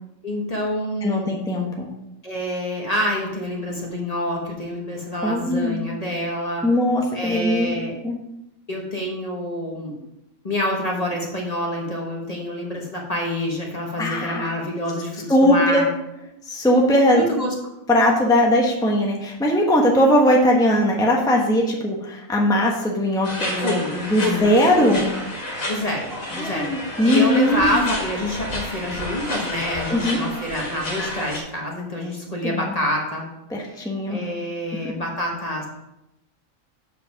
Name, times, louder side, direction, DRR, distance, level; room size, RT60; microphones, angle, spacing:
voice 1, 0.2-1.3 2.2-6.6 7.1-7.9 8.7-9.9 10.4-15.9 17.1-17.5 23.6-23.9 24.2-24.4 24.8-24.9 25.7-33.3 34.1-35.7, left 1 dB, 30° left, -1 dB, 1.3 m, -27 dB
voice 2, 1.0-1.9 5.2-5.9 6.6-7.7 8.0-8.2 14.0-14.5 15.3-15.9 16.5-17.2 17.9-25.1 26.3-27.8 29.9-30.2 32.4-32.7 33.5-34.2 34.8-34.9, left 1 dB, 5° left, -1 dB, 1.1 m, -20 dB
sound 1, 23.2-31.4, left 1 dB, 70° left, 2.1 m, -30 dB
7.8 x 5.0 x 5.8 m, 0.89 s
omnidirectional pair, 1.4 m